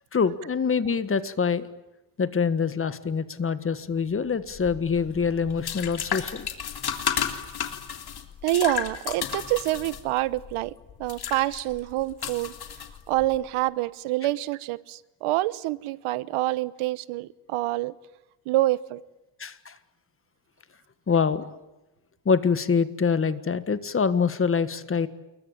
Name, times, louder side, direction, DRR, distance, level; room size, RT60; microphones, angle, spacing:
voice 1, 0.1-1.7 2.2-6.5 19.4-19.8 21.1-21.5 22.2-25.1, left 5 dB, 25° left, 13 dB, 1.6 m, -25 dB
sound 1, 4.5-13.4, left 8 dB, 50° left, 3.4 m, -33 dB
voice 2, 8.4-10.7 11.0-12.5 13.1-17.9 18.5-19.0, right 17 dB, 90° right, 18 dB, 1.1 m, -27 dB
28.5 x 23.0 x 9.0 m, 1.0 s
cardioid pair, 130°, 49 cm